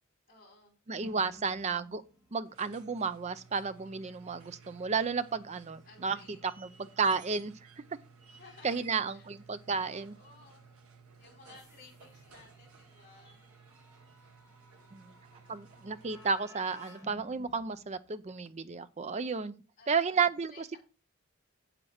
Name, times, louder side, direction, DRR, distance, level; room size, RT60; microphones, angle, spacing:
voice 1, 0.3-0.8 5.8-6.4 8.3-9.3 9.8-10.7 11.2-13.4 19.8-20.8, left 3 dB, 35° left, 4.8 m, -57 dB
voice 2, 0.9-2.0 2.3-6.2 6.4-7.5 8.6-10.2 14.9-15.1 15.5-20.8, right 5 dB, 30° right, 0.5 m, -32 dB
sound 1, 1.0-18.7, left 1 dB, 10° right, 2.6 m, -59 dB
sound 2, 2.3-16.7 18.5-18.6, right 5 dB, 75° right, 1.3 m, -57 dB
7.8 x 7.6 x 4.3 m
head